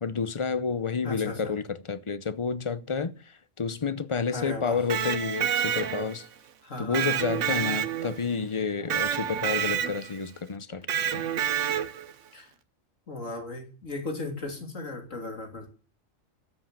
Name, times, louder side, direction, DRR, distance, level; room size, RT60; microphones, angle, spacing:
voice 1, 0.0-6.3 6.8-10.9 11.1-11.3, left 5 dB, 30° left, 0.7 m, -30 dB
voice 2, 1.0-1.6 4.3-4.8 6.6-7.2 12.3-12.5 13.1-15.7, left 2 dB, 85° left, 3.5 m, -36 dB
Electric guitar, 4.7-6.3 6.9-8.3 8.9-10.2 10.9-12.1, right 9 dB, 75° right, 1.2 m, -28 dB
13.0 x 8.1 x 8.9 m
omnidirectional pair, 1.3 m